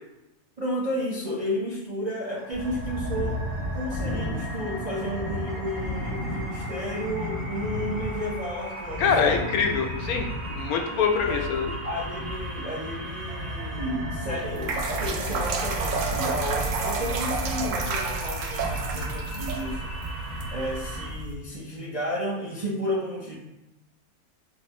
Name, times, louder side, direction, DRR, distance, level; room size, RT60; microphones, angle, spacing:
voice 1, 0.6-3.4 3.7-9.4 11.3-11.5 11.8-19.8 20.5-23.4, equal, 50° right, -6 dB, 0.5 m, -32 dB
sound 1, 2.4-21.1, right 1 dB, 85° right, 1.7 m, -39 dB
sound 2, 2.5-21.2, left 1 dB, 35° left, 0.4 m, -35 dB
voice 2, 9.0-11.8, left 6 dB, 85° left, 4 dB, 1.1 m, -25 dB
sound 3, 14.4-21.3, right 4 dB, 70° right, 0.9 m, -30 dB
4.6 x 2.6 x 4.1 m, 0.96 s
omnidirectional pair, 1.5 m